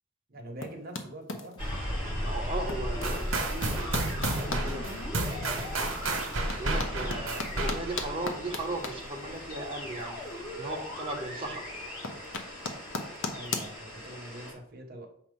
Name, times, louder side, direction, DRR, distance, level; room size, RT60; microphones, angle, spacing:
voice 1, 0.3-1.6 13.3-15.1, right 1 dB, 45° right, 2 dB, 1.2 m, -44 dB
sound 1, 0.6-1.8 2.6-4.6 5.2-5.3 5.9-10.5 10.7-11.4 11.6-13.7, left 3 dB, 65° left, 0.8 m, -37 dB
sound 2, 1.6-14.5, equal, 25° left, 2.4 m, -37 dB
voice 2, 2.2-6.0 6.6-11.6, right 1 dB, 25° right, 1 dB, 1.1 m, -37 dB
sound 3, 3.0-8.1, right 2 dB, 75° right, 1.3 m, -32 dB
6.6 x 2.9 x 5.3 m, 0.66 s
head